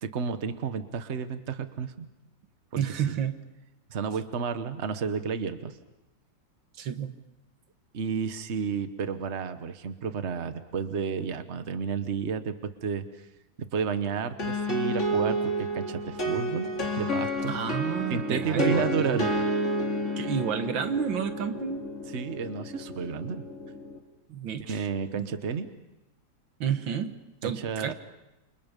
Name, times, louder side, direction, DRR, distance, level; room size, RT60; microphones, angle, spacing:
voice 1, 0.0-2.1 2.9-3.0 3.9-5.8 7.9-12.5 12.8-13.3 13.7-16.7 17.0-17.5 18.1-19.3 22.1-23.4 24.6-25.7 27.4-27.9, right 6 dB, 40° right, 9 dB, 1.4 m, -31 dB
voice 2, 2.8-3.4 6.8-7.1 17.5-19.2 20.2-21.9 24.3-24.9 25.1-25.3 26.6-27.9, right 8 dB, 85° right, 9 dB, 2.0 m, -30 dB
sound 1, 14.4-24.0, equal, 40° left, 2.9 m, -30 dB
29.0 x 26.5 x 5.4 m, 0.98 s
omnidirectional pair, 2.0 m